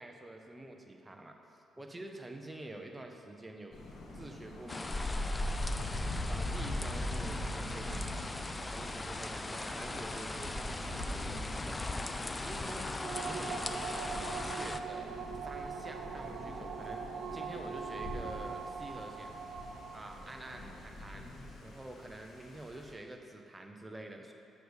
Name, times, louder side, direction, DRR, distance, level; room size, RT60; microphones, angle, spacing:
voice 1, 0.0-3.8 4.1-5.3 6.3-8.1 8.6-11.9 12.3-13.6 13.9-19.4 19.9-21.3 21.6-24.3, right 1 dB, 15° right, 3 dB, 0.7 m, -47 dB
Thunder, 3.7-22.9, left 1 dB, 60° left, 1.4 m, -43 dB
sound 1, 4.7-14.8, left 2 dB, 20° left, 0.4 m, -38 dB
sound 2, 13.0-21.1, right 6 dB, 60° right, 0.6 m, -42 dB
6.8 x 4.8 x 6.4 m, 2.7 s
cardioid pair, 90°, 0 cm